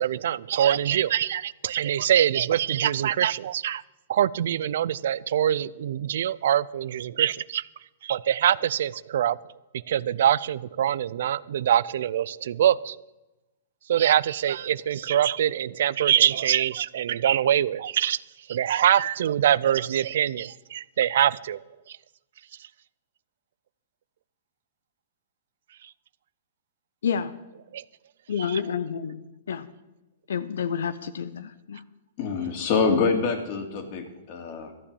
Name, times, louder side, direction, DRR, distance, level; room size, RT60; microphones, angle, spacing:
voice 1, 0.0-3.8 4.1-7.7 8.0-9.4 9.7-13.0 13.9-18.2 18.5-21.6 21.9-22.0 27.7-27.8 28.5-28.6, right 10 dB, 70° right, 21 dB, 0.4 m, -24 dB
voice 2, 28.3-29.7 30.3-31.8, left 7 dB, 80° left, 13 dB, 0.7 m, -29 dB
voice 3, 32.2-34.7, left 5 dB, 50° left, 6 dB, 2.6 m, -25 dB
14.0 x 7.2 x 8.5 m, 1.0 s
hypercardioid pair, 135°, 0 cm